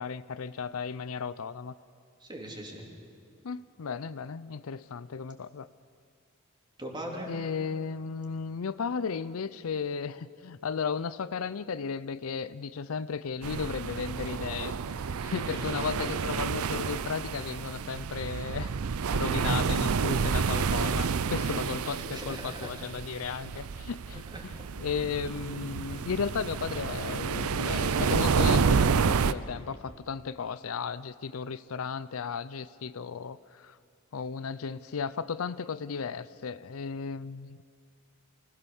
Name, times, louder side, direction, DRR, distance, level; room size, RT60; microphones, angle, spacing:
voice 1, 0.0-1.7 3.4-5.7 7.3-14.7 15.2-18.7 19.1-24.2 24.8-33.8 34.1-37.6, left 5 dB, 75° left, 16 dB, 0.5 m, -35 dB
voice 2, 2.2-2.8 6.8-7.3 15.5-15.8 22.0-22.7 23.2-23.3 24.1-24.4, right 1 dB, 20° right, 0 dB, 3.3 m, -41 dB
sound 1, 13.4-29.3, right 5 dB, 85° right, 0.6 m, -29 dB
24.5 x 17.0 x 7.1 m, 2.3 s
head